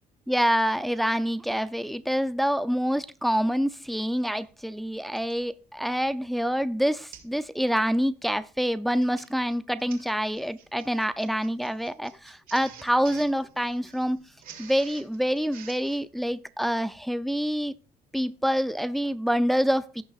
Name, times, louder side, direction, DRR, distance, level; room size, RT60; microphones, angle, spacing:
voice 1, 0.3-14.2 14.6-17.7 18.1-20.0, equal, ahead, 0.5 m, -26 dB
Printer, 4.0-4.1 5.2-5.4 6.0-6.2 6.5-6.6 7.1-7.4 7.7-8.0 8.8-16.0, right 8 dB, 60° right, 2.4 m, -49 dB
17.0 x 6.1 x 2.4 m
cardioid pair, 110°, 17 cm